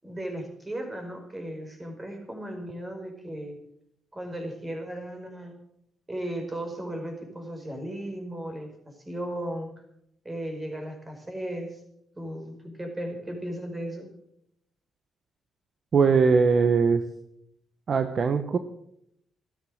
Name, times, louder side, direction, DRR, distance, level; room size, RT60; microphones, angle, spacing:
voice 1, 0.0-3.6 4.1-5.6 6.1-9.7 10.2-11.8 12.2-14.1, right 1 dB, 15° right, 4 dB, 5.2 m, -36 dB
voice 2, 15.9-17.0 17.9-18.6, right 5 dB, 50° right, 9 dB, 1.1 m, -21 dB
14.5 x 12.5 x 6.5 m, 0.73 s
cardioid pair, 90°, 0 cm